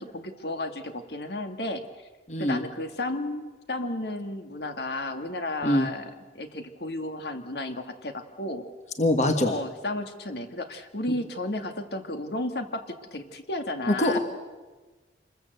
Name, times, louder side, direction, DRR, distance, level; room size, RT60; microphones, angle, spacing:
voice 1, 0.0-1.8 2.4-8.6 9.4-14.2, left 2 dB, 65° left, 7 dB, 2.0 m, -33 dB
voice 2, 2.3-2.6 5.6-5.9 9.0-9.5 13.9-14.2, left 1 dB, 40° left, 6 dB, 1.5 m, -23 dB
27.0 x 21.5 x 8.0 m, 1.3 s
head